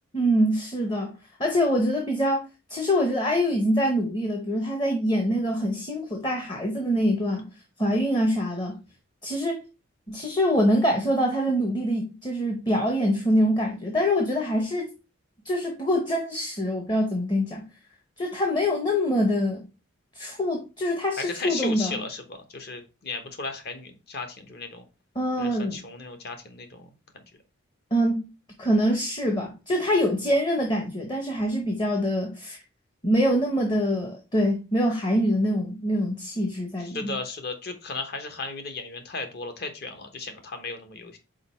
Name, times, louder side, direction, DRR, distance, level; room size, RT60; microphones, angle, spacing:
voice 1, 0.1-1.1 1.4-7.5 7.8-8.8 9.2-9.6 10.1-14.9 15.4-17.7 18.2-19.6 20.2-22.0 25.2-25.8 27.9-28.2 28.6-32.6 33.0-37.2, equal, 20° left, 0.8 m, -24 dB
voice 2, 21.2-24.8 25.4-26.9 27.1-27.2 36.8-41.2, left 3 dB, 50° left, 1.0 m, -35 dB
5.1 x 4.4 x 4.2 m
head